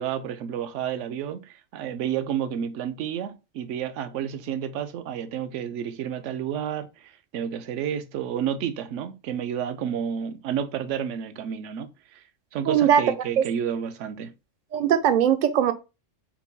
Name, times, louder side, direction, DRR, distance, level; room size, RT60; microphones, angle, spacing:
voice 1, 0.0-12.2 12.5-14.3, right 9 dB, 75° right, 0.9 m, -31 dB
voice 2, 12.7-13.0 13.4-13.5 14.7-15.7, right 9 dB, 55° right, 0.5 m, -20 dB
4.4 x 2.2 x 4.0 m
omnidirectional pair, 1.3 m